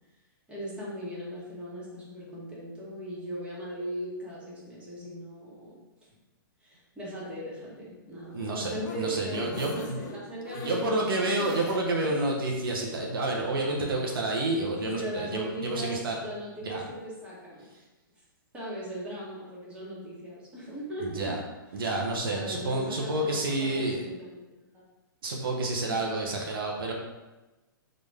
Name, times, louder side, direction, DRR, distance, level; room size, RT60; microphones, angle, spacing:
voice 1, 0.5-5.8 6.6-12.0 14.8-17.7 18.5-21.3 21.7-21.8 22.3-24.7, right 1 dB, 10° right, -7 dB, 1.2 m, -38 dB
sound 1, 8.2-12.2 12.6-12.7 13.0-13.1, left 4 dB, 50° left, 0.6 m, -43 dB
voice 2, 8.3-10.0 10.6-16.2 16.6-16.8 21.0-21.4 21.7-24.1 25.2-26.9, right 2 dB, 80° right, -1 dB, 0.8 m, -29 dB
3.8 x 2.5 x 3.4 m, 1.1 s
hypercardioid pair, 140°, 12 cm